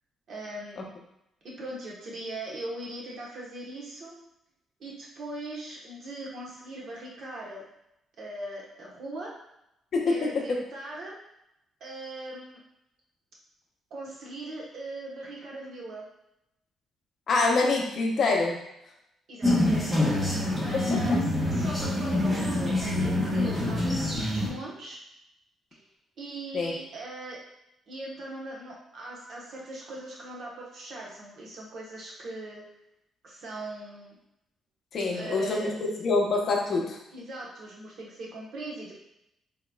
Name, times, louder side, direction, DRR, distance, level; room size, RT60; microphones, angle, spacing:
voice 1, 0.3-0.9 1.4-4.1 4.8-7.6 8.2-9.3 10.0-11.2 11.8-12.6 13.9-16.0 19.3-19.8 20.6-25.0 25.7-25.9 26.2-27.4 27.9-32.6 33.2-34.2 35.1-35.8 36.7-38.9, right 1 dB, 60° right, -4 dB, 1.1 m, -40 dB
voice 2, 9.9-10.6 17.3-18.6 20.7-21.2 26.5-26.7 34.9-37.0, left 3 dB, 55° left, 0 dB, 0.7 m, -26 dB
sound 1, 19.4-24.5, left 1 dB, 25° right, 1.1 m, -26 dB
3.8 x 2.9 x 2.3 m, 0.82 s
cardioid pair, 90°, 0 cm